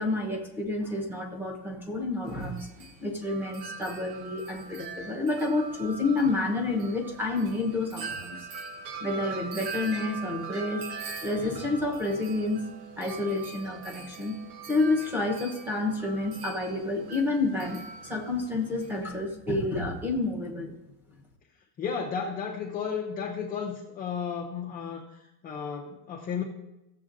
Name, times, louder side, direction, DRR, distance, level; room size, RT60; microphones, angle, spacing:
voice 1, 0.0-8.4 9.0-12.6 13.0-14.4 14.7-20.7, left 2 dB, 5° right, -2 dB, 0.8 m, -29 dB
Wind chime, 2.3-19.1, right 4 dB, 75° right, 1.1 m, -42 dB
voice 2, 21.8-25.0 25.4-26.4, left 6 dB, 20° left, -2 dB, 0.5 m, -33 dB
15.5 x 7.4 x 2.5 m, 0.93 s
cardioid pair, 175°, 43 cm